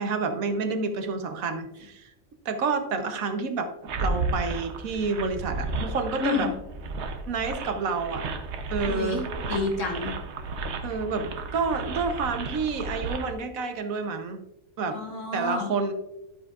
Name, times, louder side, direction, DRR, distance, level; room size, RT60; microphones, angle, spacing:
voice 1, 0.0-2.1 2.4-3.7 4.0-6.5 7.3-8.3 8.7-9.2 10.8-14.4 14.8-15.0 15.3-15.9, right 4 dB, 75° right, 7 dB, 1.3 m, -29 dB
sound 1, 3.9-13.3, right 3 dB, 60° right, 1.0 m, -33 dB
voice 2, 6.2-6.5 8.9-10.1 14.9-15.7, left 4 dB, 65° left, 1 dB, 1.9 m, -29 dB
12.0 x 8.1 x 2.4 m, 0.88 s
omnidirectional pair, 1.4 m